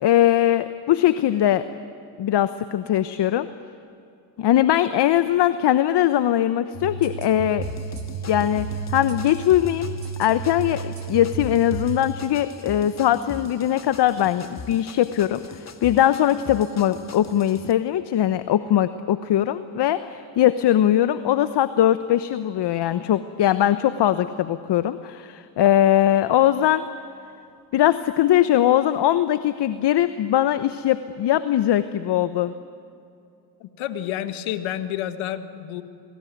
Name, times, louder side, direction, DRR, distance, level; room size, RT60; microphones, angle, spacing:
voice 1, 0.0-1.6 2.2-3.5 4.4-7.6 8.3-9.9 10.2-26.9 27.7-32.5, left 12 dB, 55° left, 12 dB, 1.1 m, -21 dB
sound 1, 6.7-12.0, right 5 dB, 55° right, 4.0 m, -32 dB
sound 2, 7.6-17.7, left 5 dB, 35° left, 1.8 m, -41 dB
voice 2, 33.6-35.8, left 11 dB, 75° left, 10 dB, 1.8 m, -29 dB
27.0 x 20.0 x 9.4 m, 2.5 s
hypercardioid pair, 60°, 48 cm